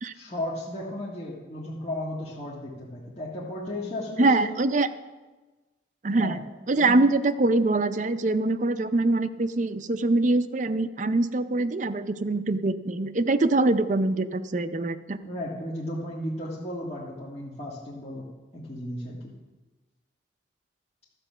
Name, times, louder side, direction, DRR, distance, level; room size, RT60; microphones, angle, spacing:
voice 1, 0.1-4.5 6.1-6.4 6.8-7.0 15.2-18.2 18.5-19.3, left 1 dB, 35° left, -5 dB, 1.6 m, -34 dB
voice 2, 4.2-4.9 6.0-6.4 6.7-15.2, right 2 dB, 40° right, 10 dB, 0.5 m, -24 dB
12.5 x 7.9 x 5.5 m, 1.2 s
head